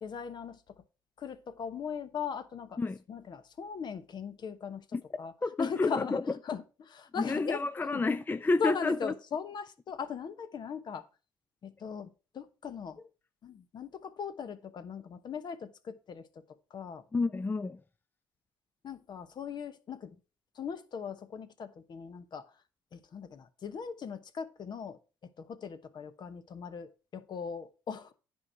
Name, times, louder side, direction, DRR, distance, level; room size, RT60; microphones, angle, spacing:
voice 1, 0.0-0.7 1.2-2.8 3.1-5.3 5.6-7.6 7.9-8.0 8.6-11.1 11.6-13.0 13.4-16.4 16.7-17.0 18.8-20.2 20.5-22.5 22.9-25.0 25.4-28.1, left 6 dB, 50° left, 1.1 m, -39 dB
voice 2, 5.4-6.2 7.2-9.1 17.1-17.8, left 3 dB, 20° left, 0.5 m, -30 dB
9.7 x 4.7 x 5.7 m
supercardioid pair, 70°, 10 cm